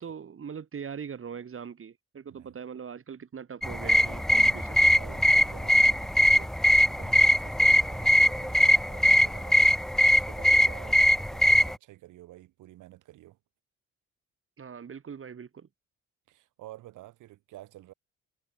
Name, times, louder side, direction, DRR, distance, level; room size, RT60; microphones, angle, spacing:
voice 1, 0.0-4.8 14.6-15.7, right 7 dB, 45° right, 3.8 m, -41 dB
sound 1, 3.6-11.7, equal, ahead, 0.6 m, -21 dB
voice 2, 4.3-13.4 16.3-17.9, right 16 dB, 90° right, 4.7 m, -50 dB
cardioid pair, 90°, 30 cm